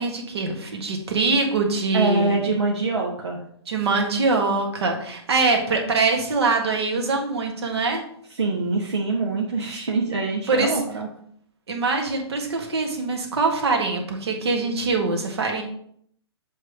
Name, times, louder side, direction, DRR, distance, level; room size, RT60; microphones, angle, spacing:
voice 1, 0.0-2.4 3.7-8.0 10.5-10.7 11.7-15.6, right 3 dB, 70° right, 2 dB, 1.7 m, -23 dB
voice 2, 1.9-3.4 8.4-11.1, right 3 dB, 85° right, -2 dB, 1.3 m, -24 dB
7.5 x 3.5 x 4.6 m, 0.66 s
hypercardioid pair, 130°, 14 cm